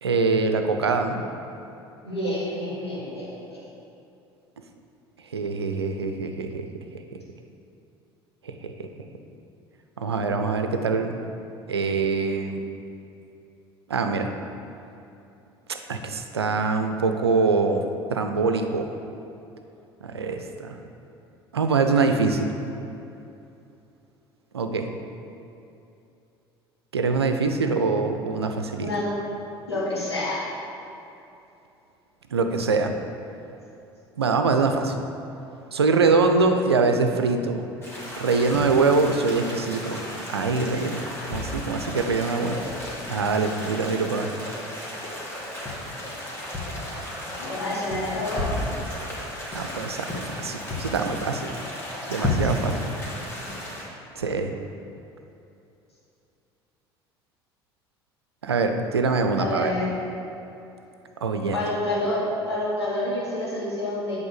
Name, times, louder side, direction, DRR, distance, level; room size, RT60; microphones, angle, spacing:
voice 1, 0.0-1.2 5.3-6.7 8.4-8.9 10.0-11.1 11.7-12.6 13.9-14.3 15.9-17.8 18.1-18.9 20.0-20.8 21.5-22.5 24.5-24.9 26.9-28.9 32.3-32.9 34.2-34.9 35.7-37.6 38.2-40.0 40.3-42.6 43.1-44.3 49.4-51.6 52.1-52.8 54.2-54.5 58.4-59.7 61.2-61.6, right 4 dB, 80° right, 6 dB, 0.5 m, -24 dB
voice 2, 2.0-3.6 28.8-29.1 29.7-30.4 47.4-48.7 52.0-52.8 59.4-59.9 61.5-64.2, left 1 dB, 85° left, -8 dB, 1.9 m, -28 dB
sound 1, 37.8-53.8, left 1 dB, 20° left, 2.1 m, -33 dB
8.5 x 4.2 x 6.7 m, 2.8 s
figure-of-eight pair, 60°, 13 cm